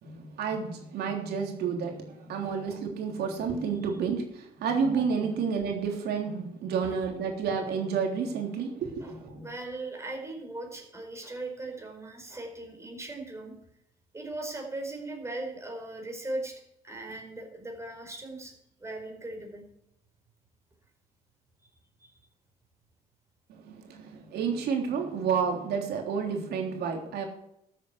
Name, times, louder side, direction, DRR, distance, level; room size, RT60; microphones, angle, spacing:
voice 1, 0.0-4.2 4.6-9.4 23.7-27.2, right 6 dB, 70° right, 2 dB, 3.5 m, -30 dB
voice 2, 9.0-13.5 14.1-18.5 18.8-19.6 22.0-22.1, right 2 dB, 15° right, 2 dB, 4.8 m, -39 dB
13.5 x 8.4 x 8.3 m, 0.77 s
cardioid pair, 110°, 17 cm